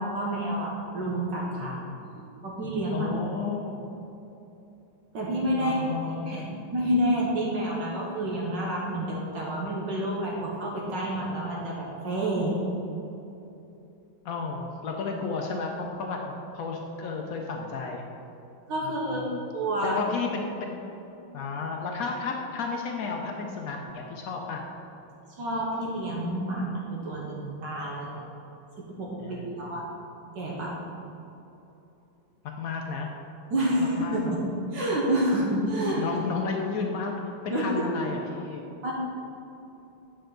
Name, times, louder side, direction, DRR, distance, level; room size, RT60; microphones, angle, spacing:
voice 1, 0.0-1.7 2.2-3.1 5.1-5.8 6.1-6.4 6.7-12.6 18.7-19.2 19.5-20.0 25.4-28.1 28.8-29.8 30.3-30.8 33.5-34.5 34.7-36.0 37.5-37.8 38.8-38.9, right 1 dB, 65° right, -4 dB, 1.6 m, -29 dB
voice 2, 1.6-2.0 2.9-3.9 5.6-6.7 14.2-18.0 18.8-19.4 19.8-20.7 21.3-24.6 28.0-28.2 29.2-29.7 32.6-33.1 33.8-34.4 36.0-37.1 37.4-38.7, left 4 dB, 85° left, 1 dB, 0.7 m, -33 dB
8.8 x 5.6 x 3.9 m, 2.9 s
omnidirectional pair, 2.2 m